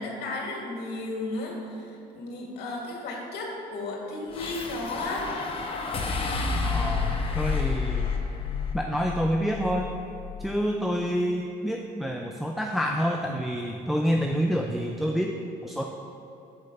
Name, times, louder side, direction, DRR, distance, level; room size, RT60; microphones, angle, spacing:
voice 1, 0.0-5.3, left 2 dB, 75° left, -1 dB, 1.8 m, -34 dB
sound 1, 4.3-10.7, left 5 dB, 35° left, 0.8 m, -30 dB
voice 2, 6.6-8.1 8.7-9.9 10.4-15.3 15.6-15.9, equal, ahead, 1 dB, 0.4 m, -27 dB
7.7 x 4.5 x 5.4 m, 2.8 s
cardioid pair, 110°, 17 cm